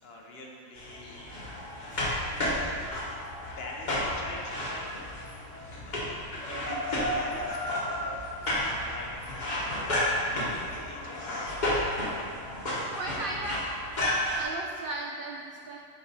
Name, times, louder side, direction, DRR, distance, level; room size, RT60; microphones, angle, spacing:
voice 1, 0.0-1.2 1.5-1.6 2.3-2.9 3.4-5.0 5.5-11.6 12.0-12.9, left 2 dB, 55° left, -1 dB, 0.8 m, -45 dB
sound 1, 0.8-14.4, left 1 dB, 35° left, 1.1 m, -32 dB
voice 2, 12.9-13.6 14.3-15.8, right 2 dB, 80° right, 0 dB, 0.4 m, -36 dB
6.5 x 4.3 x 3.9 m, 2.4 s
omnidirectional pair, 1.5 m